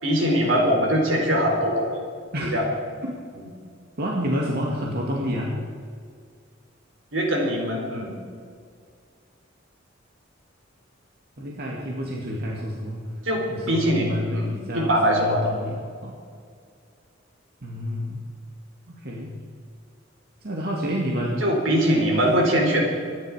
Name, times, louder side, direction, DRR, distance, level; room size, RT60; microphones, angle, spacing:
voice 1, 0.0-2.0 2.5-2.6 7.1-8.1 13.3-14.0 14.3-14.5 14.7-15.4 21.4-22.9, equal, 80° right, 0 dB, 4.3 m, -22 dB
voice 2, 4.0-5.5 11.4-13.0 13.5-16.2 17.6-18.2 18.9-19.3 20.4-21.5, equal, 55° right, -2 dB, 2.1 m, -29 dB
25.0 x 11.0 x 5.0 m, 2.1 s
head